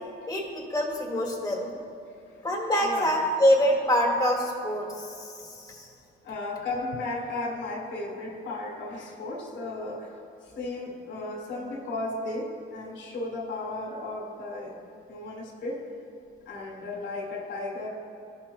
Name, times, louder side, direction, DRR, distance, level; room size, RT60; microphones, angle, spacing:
voice 1, 0.3-1.7 2.4-5.9, equal, 20° left, -1 dB, 1.8 m, -25 dB
voice 2, 2.8-3.1 6.2-10.2 10.4-14.8 15.1-15.9 16.5-17.9, left 2 dB, 70° left, -2 dB, 1.8 m, -35 dB
15.5 x 5.8 x 2.3 m, 2.7 s
cardioid pair, 90°, 20 cm